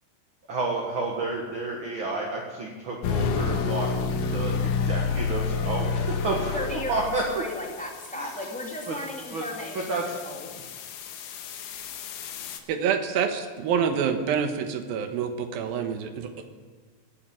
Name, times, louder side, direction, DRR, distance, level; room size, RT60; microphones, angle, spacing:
voice 1, 0.5-3.9 4.2-6.5 6.9-7.2 8.1-8.3 8.9-9.0 9.3-9.4 9.7-10.2 10.5-10.6, right 3 dB, 45° right, -1 dB, 1.9 m, -30 dB
sound 1, 3.0-12.6, left 5 dB, 75° left, 2.6 m, -30 dB
voice 2, 6.5-10.5, left 1 dB, 5° left, -1 dB, 1.1 m, -35 dB
voice 3, 12.7-16.5, right 7 dB, 85° right, 7 dB, 3.0 m, -27 dB
17.5 x 8.1 x 8.8 m, 1.5 s
omnidirectional pair, 4.2 m